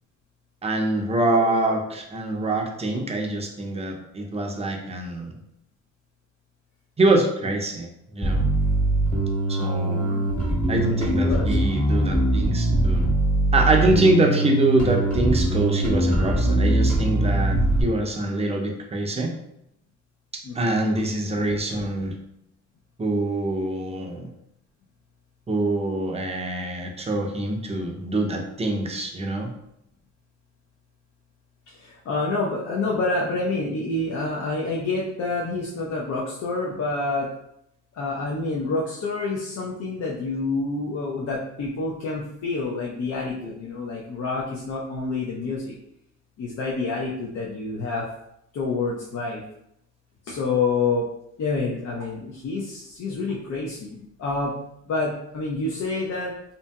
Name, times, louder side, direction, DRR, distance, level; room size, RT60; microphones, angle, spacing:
voice 1, 0.6-5.3 7.0-8.4 9.5-10.1 10.7-13.0 13.5-19.3 20.3-22.2 23.0-24.3 25.5-29.5 43.4-43.5, right 2 dB, 20° right, 2 dB, 0.5 m, -24 dB
Bass guitar, 8.2-17.8, right 1 dB, 25° left, 1.1 m, -22 dB
voice 2, 9.9-10.2 11.1-11.6 20.4-20.8 31.7-37.3 37.9-45.7 46.4-48.1 48.5-49.4 50.2-51.1 51.4-54.5 54.9-56.3, left 3 dB, 60° left, -4 dB, 0.6 m, -28 dB
2.7 x 2.6 x 2.2 m, 0.78 s
cardioid pair, 90°, 30 cm